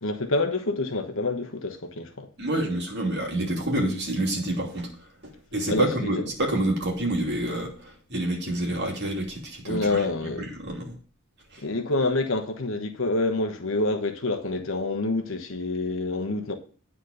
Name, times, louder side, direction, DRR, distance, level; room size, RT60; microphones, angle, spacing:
voice 1, 0.0-2.3 5.7-6.2 9.7-10.5 11.6-16.5, left 2 dB, 60° left, 1.2 m, -27 dB
voice 2, 2.4-4.9 5.5-10.0 10.4-10.9 11.5-11.6, right 1 dB, 50° right, 2.8 m, -28 dB
9.7 x 4.2 x 6.7 m
head